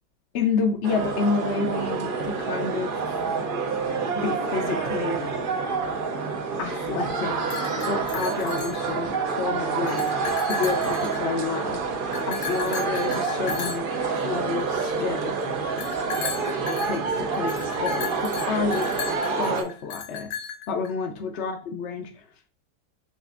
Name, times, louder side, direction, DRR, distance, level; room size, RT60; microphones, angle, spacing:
voice 1, 0.3-3.2 4.2-5.3 6.6-7.6 7.9-10.1 10.4-11.8 12.3-13.9 14.2-15.4 16.7-18.9 19.4-20.3 20.7-22.2, left 4 dB, 60° left, 3 dB, 0.7 m, -29 dB
sound 1, 0.8-19.6, right 4 dB, 60° right, 0.5 m, -27 dB
sound 2, 7.3-9.3 9.7-11.6 12.1-14.9 15.8-20.9, left 7 dB, 85° left, 1.2 m, -35 dB
6.4 x 2.5 x 2.4 m, 0.39 s
omnidirectional pair, 1.7 m